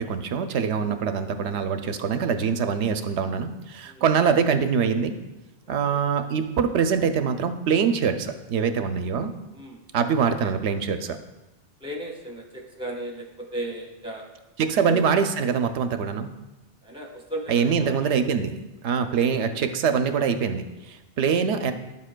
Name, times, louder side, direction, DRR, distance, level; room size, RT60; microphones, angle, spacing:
voice 1, 0.0-5.2 5.7-9.3 9.9-11.2 14.6-16.3 17.5-18.6 18.8-21.7, right 6 dB, 85° right, 8 dB, 0.9 m, -24 dB
voice 2, 5.7-6.0 9.5-9.8 11.8-14.2 14.8-15.1 16.8-17.9, right 1 dB, 5° right, 1 dB, 1.0 m, -35 dB
11.0 x 7.4 x 2.2 m, 1.0 s
omnidirectional pair, 1.2 m